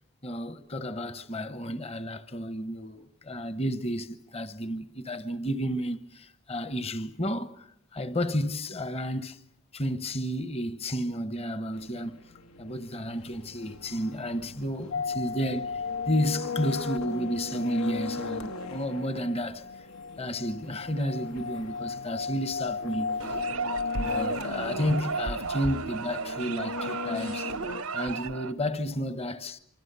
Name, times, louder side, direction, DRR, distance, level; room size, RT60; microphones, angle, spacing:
voice 1, 0.2-9.4 9.7-12.2 12.6-19.9 20.2-23.4 24.0-27.5 27.9-29.6, equal, 30° left, 1.0 m, -32 dB
sound 1, 11.7-27.8, left 4 dB, 75° left, 1.2 m, -40 dB
sound 2, 14.9-24.2, left 4 dB, 55° left, 2.4 m, -36 dB
sound 3, 23.2-28.5, right 4 dB, 80° right, 0.9 m, -34 dB
26.5 x 25.0 x 6.9 m
head